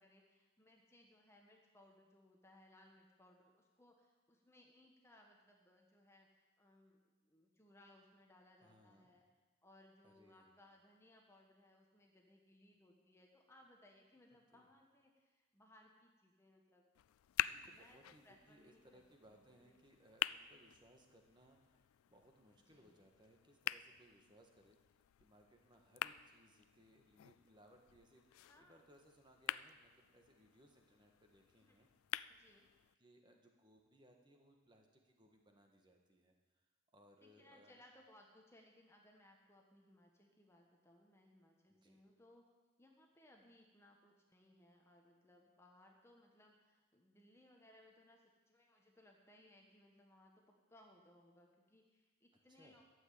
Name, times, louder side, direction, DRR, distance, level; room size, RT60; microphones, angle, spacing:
voice 1, 0.0-9.3 9.6-16.9 17.6-19.0 19.3-19.8 22.6-22.9 28.5-28.8 31.6-31.9 32.3-32.7 37.2-42.5 42.8-52.8, left 1 dB, 15° left, 1 dB, 1.1 m, -66 dB
voice 2, 8.6-9.1 10.0-10.5 14.5-14.7 17.4-24.8 25.2-31.9 33.0-36.3 36.9-37.8 41.7-42.0 52.5-52.8, equal, 20° right, 2 dB, 1.5 m, -67 dB
sound 1, 16.9-32.9, left 13 dB, 85° left, 0.3 m, -47 dB
12.5 x 7.6 x 8.4 m, 1.3 s
head